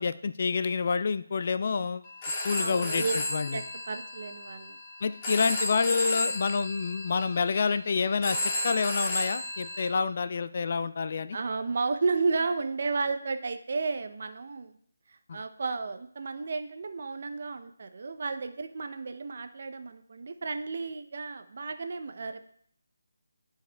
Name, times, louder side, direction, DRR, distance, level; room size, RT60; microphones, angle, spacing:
voice 1, 0.0-2.0 2.4-3.6 5.0-8.4 8.6-11.4 15.3-15.4, left 5 dB, 45° left, 12 dB, 0.3 m, -28 dB
Telephone, 2.0-9.9, left 1 dB, 25° left, 1.5 m, -33 dB
voice 2, 2.5-3.1 3.5-4.8 11.3-14.7 15.1-22.5, right 4 dB, 50° right, 8 dB, 0.6 m, -32 dB
12.0 x 4.7 x 2.3 m, 0.63 s
figure-of-eight pair, 160°, 0 cm